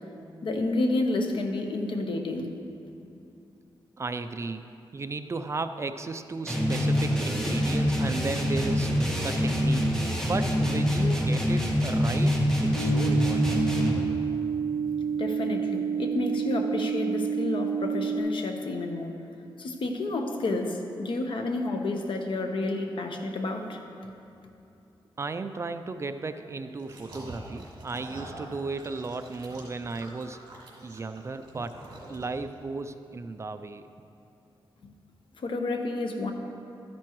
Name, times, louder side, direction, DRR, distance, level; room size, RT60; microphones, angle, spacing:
voice 1, 0.4-2.5 15.1-19.1 19.6-23.8 35.4-36.3, left 2 dB, 65° left, 4 dB, 0.9 m, -30 dB
voice 2, 4.0-4.6 4.9-9.9 10.2-12.4 12.6-13.6 25.2-30.4 30.8-31.8 32.1-33.8, right 3 dB, 30° right, 9 dB, 0.3 m, -35 dB
sound 1, 6.5-14.1, equal, 5° left, 1.4 m, -25 dB
sound 2, 12.7-18.2, right 7 dB, 90° left, 1.2 m, -29 dB
sound 3, 26.8-32.5, right 1 dB, 55° right, 2.4 m, -45 dB
13.0 x 10.5 x 3.1 m, 2.8 s
wide cardioid pair, 135°, 9 cm